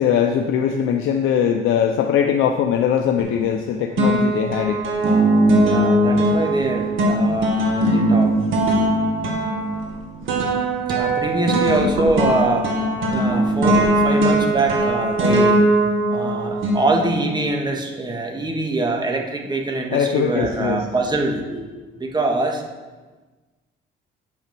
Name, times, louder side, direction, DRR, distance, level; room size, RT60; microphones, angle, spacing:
voice 1, 0.0-4.8 19.9-20.8, left 8 dB, 85° left, 4 dB, 0.6 m, -20 dB
sound 1, 3.2-3.6 4.0-17.4, right 1 dB, 80° right, 1.7 m, -19 dB
voice 2, 5.5-8.3 10.9-12.7 13.1-15.6 16.1-22.6, right 2 dB, 20° right, 1 dB, 1.6 m, -24 dB
8.4 x 5.8 x 6.1 m, 1.3 s
cardioid pair, 90°, 20 cm